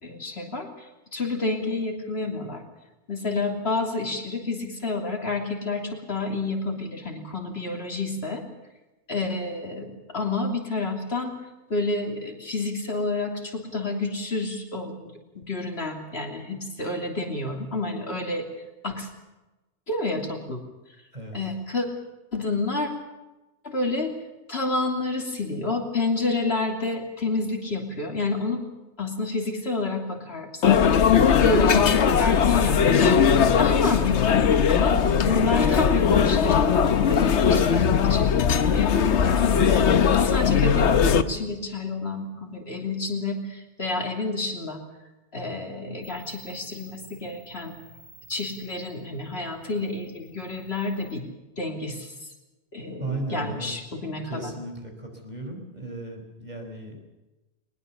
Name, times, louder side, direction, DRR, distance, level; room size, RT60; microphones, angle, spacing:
voice 1, 0.0-2.6 3.1-8.4 9.1-11.3 11.7-14.9 15.3-18.5 18.8-19.1 19.9-20.6 21.3-21.9 22.3-22.9 23.6-24.1 24.5-28.6 29.0-30.8 31.4-33.2 33.6-34.4 34.7-36.7 37.0-44.8 45.3-47.7 48.3-51.2 51.6-52.3 52.7-54.5, left 3 dB, 65° left, 2 dB, 3.4 m, -29 dB
sound 1, 30.6-41.2, left 7 dB, 80° left, 1.2 m, -19 dB
sound 2, 46.0-51.1, right 3 dB, 90° right, 6.5 m, -51 dB
voice 2, 53.0-53.7 54.2-57.0, right 2 dB, 40° right, 3 dB, 4.7 m, -35 dB
21.5 x 20.5 x 7.0 m, 1.1 s
omnidirectional pair, 1.2 m